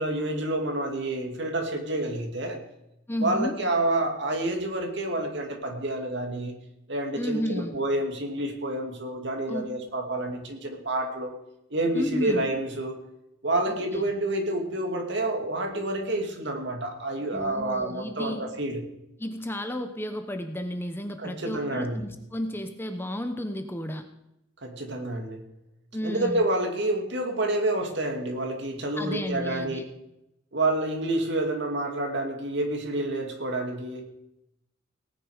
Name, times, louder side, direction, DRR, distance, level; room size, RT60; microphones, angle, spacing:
voice 1, 0.0-2.6 3.2-6.6 6.9-11.4 11.7-13.0 13.4-18.8 21.2-22.0 24.6-25.5 26.0-29.8 30.5-34.0, right 1 dB, 60° right, 4 dB, 2.4 m, -28 dB
voice 2, 3.1-3.6 7.2-7.8 9.5-9.7 11.9-12.5 13.7-14.1 17.3-18.4 19.2-24.0 25.9-26.4 29.0-29.8, equal, 10° left, 7 dB, 0.9 m, -32 dB
18.0 x 9.9 x 5.0 m, 0.85 s
head